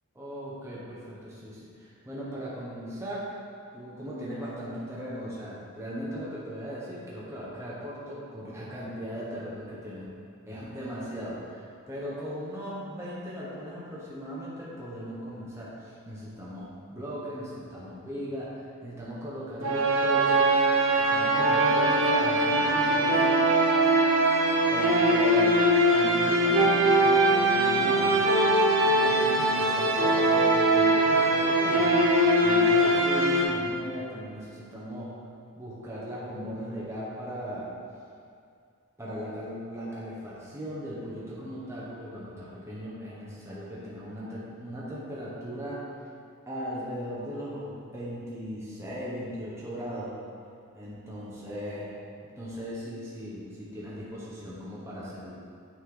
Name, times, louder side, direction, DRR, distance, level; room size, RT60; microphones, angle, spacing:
voice 1, 0.1-3.3 3.7-10.1 10.5-20.5 21.0-23.4 24.7-28.2 28.6-32.0 32.4-35.2 35.6-37.7 39.0-45.8 46.5-50.1 50.7-51.9 52.4-55.3, equal, 15° right, -8 dB, 1.1 m, -38 dB
sound 1, 19.6-33.4, right 1 dB, 65° right, 0.9 m, -22 dB
8.6 x 4.4 x 3.8 m, 2.4 s
head